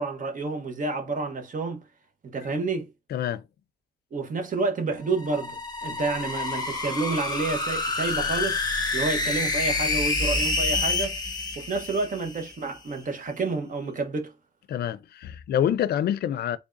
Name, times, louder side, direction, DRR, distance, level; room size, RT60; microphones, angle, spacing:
voice 1, 0.0-1.8 2.2-2.9 4.1-8.6 8.9-11.2 11.6-14.3, right 3 dB, 55° right, 1.0 m, -29 dB
voice 2, 3.1-3.4 14.7-16.6, left 10 dB, 80° left, 0.4 m, -26 dB
sound 1, 5.1-12.5, left 3 dB, 25° left, 0.9 m, -28 dB
3.5 x 3.5 x 2.5 m
cardioid pair, 90°, 16 cm